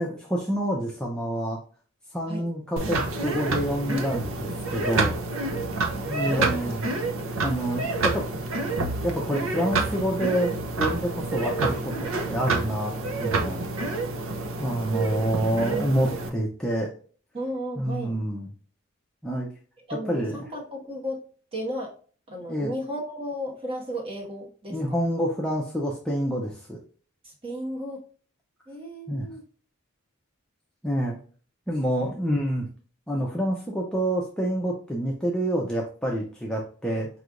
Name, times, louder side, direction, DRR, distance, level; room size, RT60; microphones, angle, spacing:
voice 1, 0.0-1.6 2.1-5.1 6.1-6.8 7.4-8.2 9.0-10.5 10.8-13.6 14.6-16.9 17.8-18.5 19.2-19.5 20.1-20.4 22.5-22.7 24.7-26.8 29.1-29.3 30.8-31.2 31.7-32.7 33.1-37.1, equal, 5° left, -2 dB, 0.6 m, -27 dB
sound 1, 2.8-16.3, right 3 dB, 80° right, 0.7 m, -28 dB
voice 2, 5.9-6.6 15.4-15.9 17.3-18.2 19.9-21.2 21.5-21.9 22.3-25.0 27.2-28.0 28.7-29.4 32.0-32.1, equal, 25° right, 0 dB, 1.2 m, -34 dB
4.7 x 3.2 x 2.5 m, 0.41 s
head